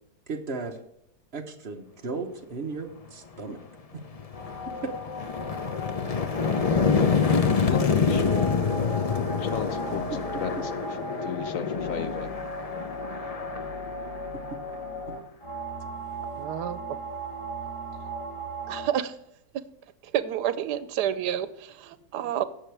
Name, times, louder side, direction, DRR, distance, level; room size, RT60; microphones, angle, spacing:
voice 1, 0.3-0.8 1.3-3.6 3.9-4.1 4.7-4.9 10.1-10.2 10.6-10.7 14.5-14.6 15.1-15.2, right 4 dB, 45° right, 4 dB, 1.3 m, -35 dB
sound 1, 3.4-3.5 4.0-14.8, left 5 dB, 45° left, 0.4 m, -27 dB
sound 2, 4.3-18.9, equal, 20° left, 1.7 m, -37 dB
voice 2, 7.6-8.5 9.4-12.3, left 8 dB, 65° left, 11 dB, 0.9 m, -35 dB
voice 3, 16.4-16.8 18.7-19.1 20.1-22.4, right 10 dB, 90° right, 14 dB, 1.3 m, -29 dB
16.5 x 6.5 x 3.4 m, 0.80 s
omnidirectional pair, 1.7 m